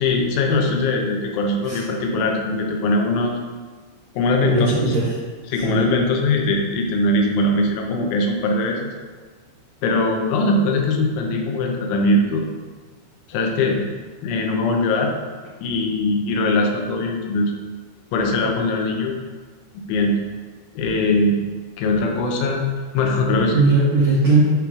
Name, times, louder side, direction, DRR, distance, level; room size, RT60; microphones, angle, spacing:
voice 1, 0.0-3.3 4.2-4.9 5.5-8.9 9.8-12.4 13.3-13.9 14.2-15.1 15.6-17.5 18.1-19.2 19.9-20.2 20.8-21.4 21.8-22.7 22.9-23.6, left 2 dB, 85° left, 1 dB, 3.1 m, -21 dB
voice 2, 4.4-5.2 5.6-5.8 23.5-24.4, right 3 dB, 80° right, -7 dB, 1.9 m, -18 dB
10.5 x 3.7 x 3.1 m, 1.4 s
omnidirectional pair, 5.5 m